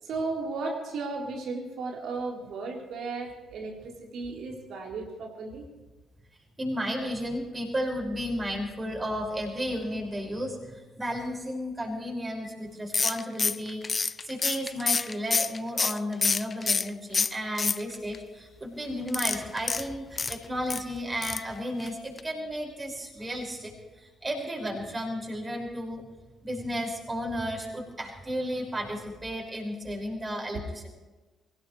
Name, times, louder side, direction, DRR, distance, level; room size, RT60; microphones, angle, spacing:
voice 1, 0.0-5.7 30.5-30.6, right 3 dB, 55° right, 0 dB, 3.9 m, -35 dB
voice 2, 6.6-26.1 26.4-30.9, equal, 25° right, 0 dB, 5.7 m, -33 dB
sound 1, 12.9-16.9 17.1-18.2 19.1-20.8 21.2-21.5 21.8-21.9 22.2-22.3, left 4 dB, 35° left, 0.4 m, -27 dB
23.5 x 18.5 x 3.3 m, 1.2 s
figure-of-eight pair, 45°, 0 cm